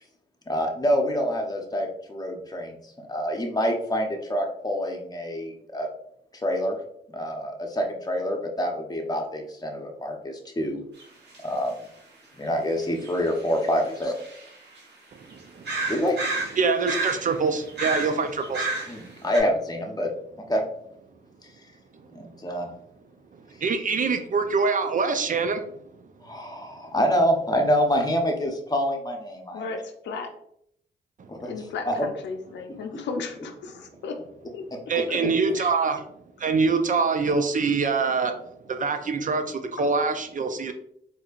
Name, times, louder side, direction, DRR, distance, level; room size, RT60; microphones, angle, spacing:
voice 1, 0.5-5.9 6.4-6.8 7.1-10.8 11.4-11.7 12.4-14.1 15.8-16.2 18.9-20.1 20.4-20.6 22.1-22.7 26.2-29.7 31.3-31.5 31.9-32.1 35.5-35.6, equal, 20° left, 2 dB, 0.9 m, -26 dB
sound 1, 11.0-11.1 11.3-11.4 13.0-14.8 15.3-15.4 15.6-17.4 17.7-19.1 19.3-19.4, right 3 dB, 70° right, 1.1 m, -31 dB
voice 2, 15.1-15.9 16.6-19.2 21.9-22.1 23.3-25.7 31.2-31.3 34.9-36.0 36.4-38.4 38.7-40.7, right 4 dB, 45° right, 7 dB, 0.5 m, -25 dB
voice 3, 29.5-30.3 31.4-34.2 34.5-34.6 35.1-35.2 35.6-35.7, left 4 dB, 80° left, 5 dB, 0.5 m, -35 dB
4.2 x 2.7 x 2.4 m, 0.71 s
cardioid pair, 60°, 18 cm